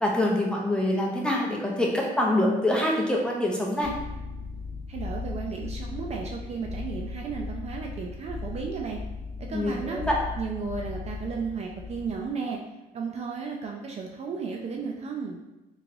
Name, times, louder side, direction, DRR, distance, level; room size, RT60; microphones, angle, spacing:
voice 1, 0.0-3.9 9.5-10.2, left 1 dB, 5° left, -2 dB, 0.6 m, -25 dB
sound 1, 3.8-12.3, left 4 dB, 90° right, 0.8 m, -37 dB
voice 2, 4.9-9.0 9.4-10.0 10.4-12.6 12.9-15.4, right 5 dB, 40° right, 1 dB, 0.4 m, -34 dB
3.0 x 2.8 x 2.6 m, 1.0 s
cardioid pair, 110°, 17 cm